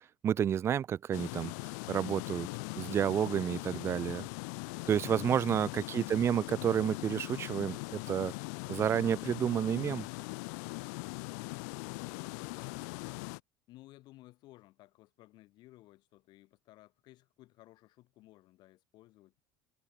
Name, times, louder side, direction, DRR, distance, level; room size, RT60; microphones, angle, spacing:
voice 1, 0.2-1.5 1.9-2.5 2.8-4.3 4.9-8.3 8.7-10.0, right 9 dB, 25° right, 0.7 m, -30 dB
sound 1, 1.1-13.4, left 32 dB, 75° left, 0.5 m, -41 dB
voice 2, 5.7-6.3 12.1-13.4 13.7-19.3, left 17 dB, 50° left, 6.8 m, -58 dB
cardioid pair, 145°, 9 cm